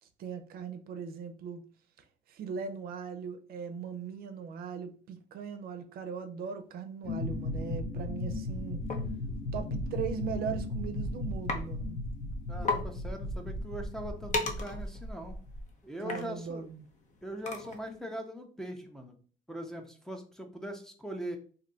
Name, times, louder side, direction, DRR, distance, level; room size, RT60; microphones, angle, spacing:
voice 1, 0.0-1.6 2.0-8.8 9.5-12.0 16.0-16.9, right 7 dB, 60° right, 0.5 m, -39 dB
sound 1, 7.0-15.6, left 2 dB, 80° left, 0.8 m, -36 dB
sound 2, 8.9-9.1 10.1-10.3 10.7-11.0 11.5-11.6 12.0-12.1 12.3-12.4 12.6-12.9 13.3-18.0, left 3 dB, 45° left, 0.7 m, -36 dB
voice 2, 12.5-15.4 15.8-16.6 17.2-19.1 19.5-21.4, equal, 5° left, 0.5 m, -41 dB
2.7 x 2.2 x 3.8 m
cardioid pair, 110°, 17 cm